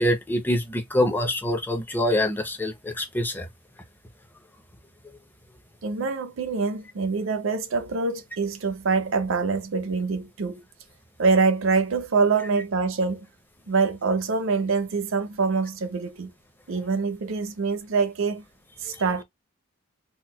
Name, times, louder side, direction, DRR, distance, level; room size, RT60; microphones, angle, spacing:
voice 1, 0.0-3.5, left 1 dB, 10° left, 0.5 m, -25 dB
voice 2, 5.8-10.6 11.2-13.3 13.7-16.3 16.7-18.4 18.8-19.2, right 4 dB, 70° right, 0.5 m, -25 dB
4.2 x 2.1 x 2.2 m
head